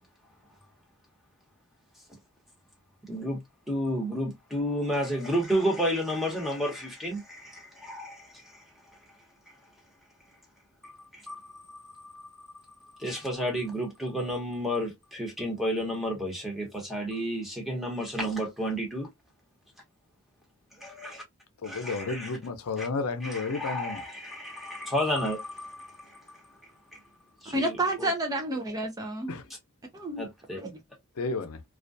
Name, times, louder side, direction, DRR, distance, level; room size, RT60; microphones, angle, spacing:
voice 1, 3.0-3.4 3.7-8.6 9.5-9.6 10.8-12.6 13.0-19.1 20.8-21.2 21.6-22.3 22.8-22.9 23.2-26.4 26.9-27.0 27.4-28.1 30.2-30.6, equal, ahead, 0.9 m, -32 dB
voice 2, 21.6-24.0 29.3-29.5 31.1-31.6, left 3 dB, 85° left, 0.5 m, -32 dB
voice 3, 27.5-29.4 29.9-30.2 30.6-30.7, right 1 dB, 15° right, 0.4 m, -30 dB
2.3 x 2.2 x 2.5 m
head